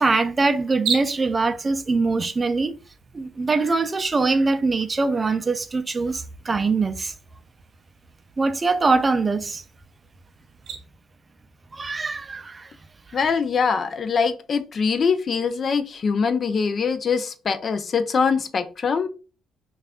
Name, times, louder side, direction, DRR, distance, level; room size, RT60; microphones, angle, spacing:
voice 1, 0.0-2.8 3.1-7.1 8.4-9.6 11.7-12.7 13.1-13.2, right 3 dB, 30° right, 0.4 m, -23 dB
sound 1, 0.8-10.8, right 7 dB, 80° right, 0.7 m, -39 dB
voice 2, 13.1-19.1, left 5 dB, 50° left, 0.4 m, -23 dB
3.3 x 2.3 x 3.5 m
cardioid pair, 90°, 0 cm